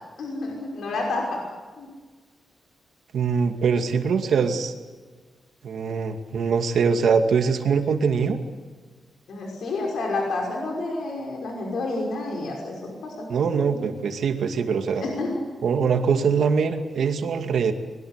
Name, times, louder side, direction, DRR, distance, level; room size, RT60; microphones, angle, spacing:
voice 1, 0.2-1.4 1.8-1.9 9.3-13.3 14.9-15.4 16.0-16.1, left 2 dB, 80° left, 0 dB, 5.7 m, -29 dB
voice 2, 3.1-4.7 5.6-8.4 13.3-15.0 15.6-17.7, right 6 dB, 75° right, 6 dB, 2.3 m, -23 dB
23.5 x 21.5 x 8.3 m, 1.4 s
wide cardioid pair, 135°, 0 cm